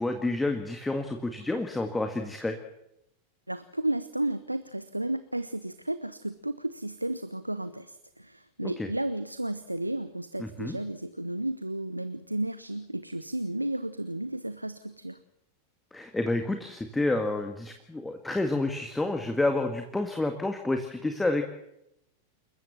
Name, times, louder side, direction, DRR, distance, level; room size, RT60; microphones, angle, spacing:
voice 1, 0.0-2.5 8.6-8.9 10.4-10.8 15.9-21.4, left 2 dB, 5° left, 5 dB, 1.9 m, -29 dB
voice 2, 3.5-15.2, right 1 dB, 85° right, 13 dB, 0.8 m, -33 dB
28.5 x 14.5 x 7.4 m, 0.83 s
figure-of-eight pair, 90°, 0 cm